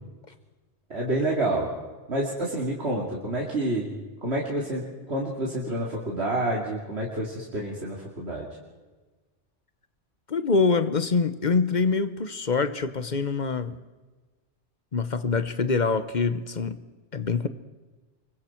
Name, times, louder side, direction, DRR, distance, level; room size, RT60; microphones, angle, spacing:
voice 1, 0.9-1.7 2.1-3.9 4.2-8.5, right 1 dB, 70° right, -4 dB, 3.0 m, -28 dB
voice 2, 10.3-13.8 14.9-16.8 17.1-17.5, left 4 dB, 45° left, 12 dB, 1.0 m, -25 dB
26.0 x 22.5 x 4.5 m, 1.3 s
omnidirectional pair, 1.1 m